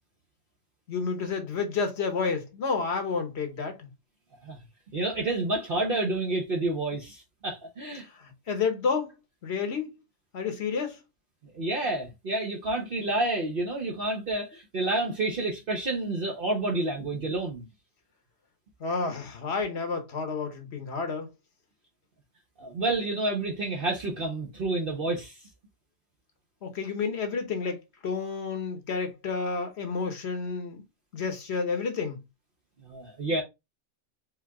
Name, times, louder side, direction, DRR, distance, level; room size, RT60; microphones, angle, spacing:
voice 1, 0.9-3.9 8.0-9.1 9.4-9.9 10.3-11.0 18.8-21.3 26.6-30.8 31.1-32.2, left 5 dB, 60° left, 1.2 m, -30 dB
voice 2, 4.9-8.1 11.5-17.6 22.6-25.4 32.8-33.4, right 2 dB, 50° right, 1.1 m, -29 dB
4.7 x 2.8 x 3.5 m
omnidirectional pair, 1.2 m